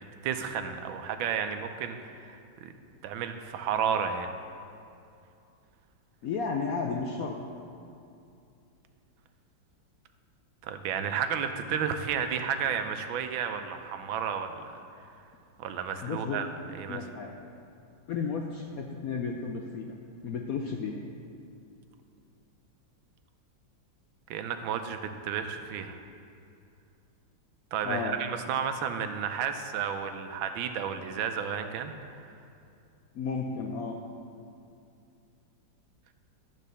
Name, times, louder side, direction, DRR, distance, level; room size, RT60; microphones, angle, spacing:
voice 1, 0.0-2.7 3.0-4.3 10.6-14.6 15.6-16.5 16.7-17.0 24.3-26.0 27.7-32.2, right 7 dB, 90° right, 8 dB, 1.4 m, -32 dB
voice 2, 6.2-7.3 16.0-16.4 16.9-17.3 18.1-19.9 20.2-21.0 27.8-28.2 33.1-34.0, left 5 dB, 75° left, 2 dB, 0.8 m, -33 dB
12.0 x 4.1 x 6.6 m, 2.6 s
omnidirectional pair, 2.1 m